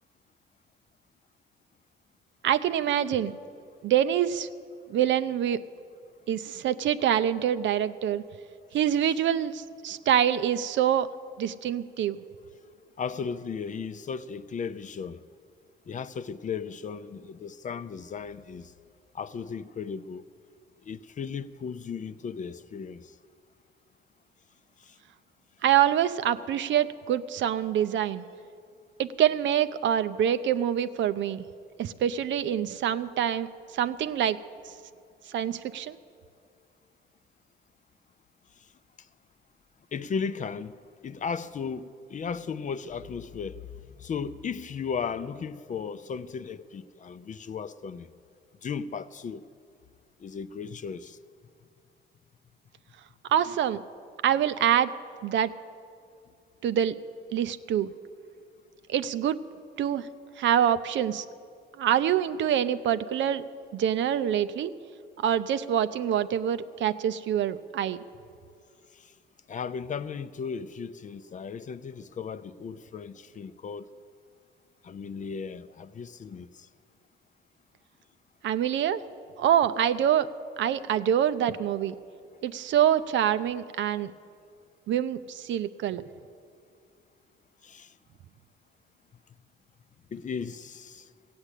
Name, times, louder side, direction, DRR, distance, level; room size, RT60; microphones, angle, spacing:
voice 1, 2.4-3.4 3.8-4.5 4.9-5.6 6.3-8.2 8.7-11.1 11.4-12.2 25.6-28.3 29.0-31.4 31.8-33.5 33.7-34.4 35.3-36.0 53.3-53.8 54.2-54.9 55.2-55.5 56.6-57.0 57.3-57.9 58.9-59.4 59.8-60.1 60.4-61.2 61.8-63.4 63.7-64.7 65.2-68.0 78.4-79.0 79.4-80.3 80.6-81.9 82.4-84.1 84.9-86.0, right 10 dB, 70° right, 0.6 m, -25 dB
voice 2, 13.0-15.2 15.9-18.7 19.1-20.2 20.9-23.1 39.9-40.7 41.0-43.7 44.0-48.1 48.6-49.4 50.2-51.2 69.5-73.9 74.8-76.5 87.6-87.9 90.1-91.0, left 6 dB, 40° left, 0.5 m, -35 dB
15.5 x 8.7 x 8.2 m
cardioid pair, 90°, 20 cm